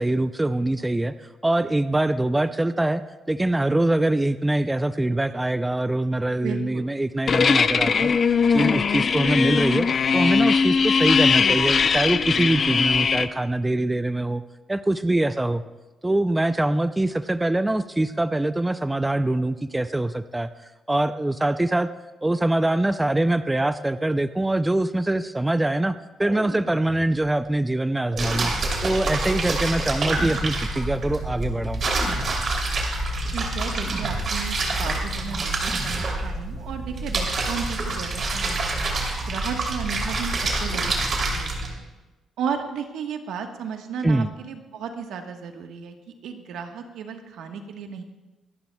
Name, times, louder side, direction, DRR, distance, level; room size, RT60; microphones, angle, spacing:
voice 1, 0.0-3.0 3.3-8.1 8.5-9.9 10.1-14.4 14.7-15.6 16.0-21.9 22.2-28.5 28.8-31.8 44.0-44.3, right 1 dB, 10° right, 12 dB, 0.4 m, -24 dB
voice 2, 6.4-6.9 33.3-38.7 39.2-40.3 40.6-41.8 42.4-45.9 46.2-48.0, right 6 dB, 80° right, 5 dB, 1.3 m, -34 dB
sound 1, 7.3-13.3, left 5 dB, 45° left, 0.5 m, -20 dB
sound 2, 26.2-27.4 28.1-29.3 30.0-31.2 31.9-33.0 33.9-34.8 35.7-36.6, right 1 dB, 35° right, 4.3 m, -38 dB
sound 3, 28.2-41.7, right 2 dB, 50° right, 3.0 m, -27 dB
24.5 x 11.5 x 2.3 m, 1.2 s
cardioid pair, 90°, 0 cm